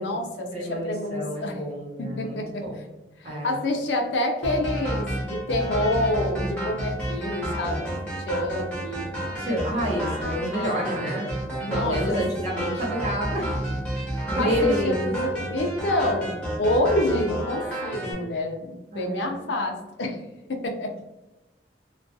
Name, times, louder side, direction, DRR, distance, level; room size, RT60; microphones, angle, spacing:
voice 1, 0.0-1.6 2.0-2.6 3.2-7.8 8.3-9.1 11.6-12.2 14.2-16.3 16.6-20.2 20.5-21.0, left 1 dB, 85° left, 3 dB, 0.5 m, -27 dB
voice 2, 0.5-2.9 3.2-3.6 9.4-13.5 13.9-15.1 18.9-19.5, equal, 40° right, -3 dB, 0.8 m, -29 dB
sound 1, 4.4-18.1, right 1 dB, 5° left, 0.8 m, -31 dB
2.3 x 2.2 x 2.6 m, 1.0 s
head